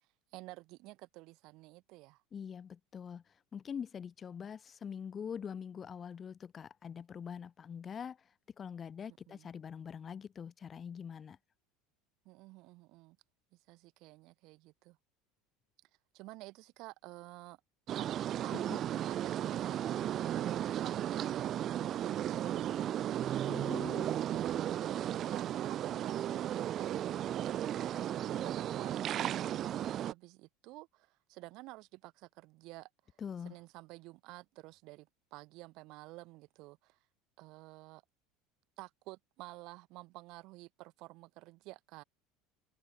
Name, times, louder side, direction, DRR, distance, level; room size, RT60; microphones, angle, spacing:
voice 1, 0.3-2.2 9.3-9.5 12.2-13.2 13.5-15.0 16.1-17.6 17.9-18.1 18.4-21.3 22.0-23.3 25.3-27.0 27.3-32.9 33.4-37.0 37.4-38.0 38.8-42.0, right 21 dB, 60° right, 2.4 m, -51 dB
voice 2, 2.3-3.2 3.5-8.2 8.6-11.4 18.5-18.8 23.5-24.1 33.2-33.6, left 7 dB, 30° left, 1.5 m, -44 dB
sound 1, 17.9-30.1, right 11 dB, 45° right, 0.8 m, -35 dB
supercardioid pair, 110°, 0 cm